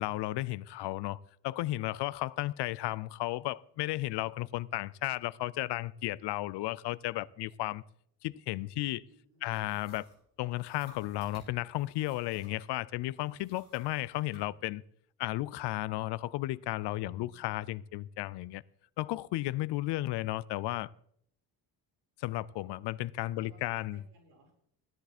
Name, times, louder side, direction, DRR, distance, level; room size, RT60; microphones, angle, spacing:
voice 1, 0.0-7.8 8.2-9.0 9.4-10.0 10.4-14.8 15.2-18.6 19.0-20.9 22.2-24.0, left 17 dB, 75° left, 0.5 m, -34 dB
voice 2, 8.8-9.8 17.0-17.5 23.4-24.5, right 2 dB, 70° right, 6.0 m, -62 dB
sound 1, 9.4-12.7 13.1-14.5, left 1 dB, 20° left, 5.9 m, -60 dB
13.0 x 10.5 x 4.3 m
cardioid pair, 165°, 41 cm